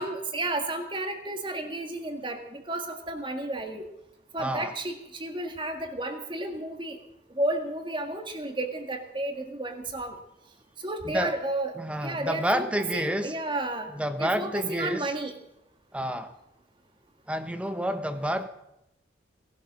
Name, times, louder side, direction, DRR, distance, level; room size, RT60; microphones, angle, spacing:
voice 1, 0.0-3.9 4.3-4.9 5.2-7.0 7.4-10.2 10.8-11.7 12.0-13.9 14.2-15.3, right 1 dB, 25° right, 1.8 m, -32 dB
voice 2, 4.4-4.7 11.0-11.4 11.8-13.3 13.9-15.1 15.9-16.3 17.3-18.5, equal, 5° right, 0.8 m, -29 dB
18.5 x 11.5 x 6.2 m
head